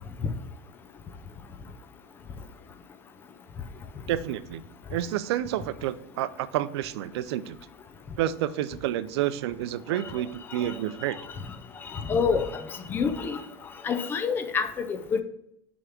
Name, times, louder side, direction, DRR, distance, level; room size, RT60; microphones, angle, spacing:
voice 1, 4.1-4.6 4.9-7.6 8.2-11.2, right 12 dB, 75° right, 15 dB, 0.4 m, -29 dB
voice 2, 9.9-10.2 10.5-10.8 11.1-11.2 11.8-13.4 13.8-15.2, left 5 dB, 15° left, 9 dB, 0.3 m, -28 dB
6.3 x 3.5 x 5.8 m, 0.75 s
supercardioid pair, 175°, 14 cm